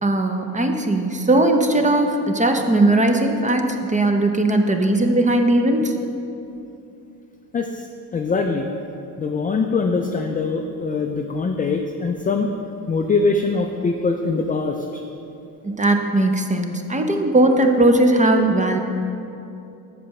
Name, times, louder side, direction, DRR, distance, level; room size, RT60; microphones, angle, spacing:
voice 1, 0.0-5.9 15.6-18.8, right 1 dB, 20° right, 5 dB, 0.7 m, -18 dB
voice 2, 7.5-7.9 8.1-8.7 9.2-12.5 12.9-15.0, left 4 dB, 20° left, 4 dB, 0.4 m, -22 dB
6.8 x 5.0 x 5.9 m, 2.7 s
cardioid pair, 80°, 40 cm